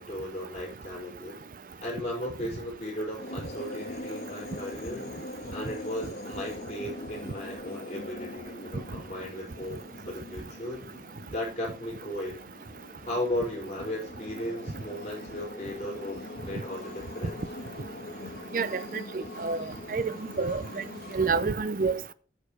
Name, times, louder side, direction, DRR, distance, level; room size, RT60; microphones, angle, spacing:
voice 1, 0.0-1.4 1.8-5.1 5.5-10.9 11.3-12.4 13.0-17.4, left 1 dB, 35° left, 5.0 m, -36 dB
sound 1, 3.2-21.5, left 1 dB, 60° left, 1.6 m, -42 dB
voice 2, 18.5-20.1 20.4-20.6 21.1-22.1, right 4 dB, 50° right, 0.6 m, -28 dB
9.7 x 6.8 x 4.7 m
head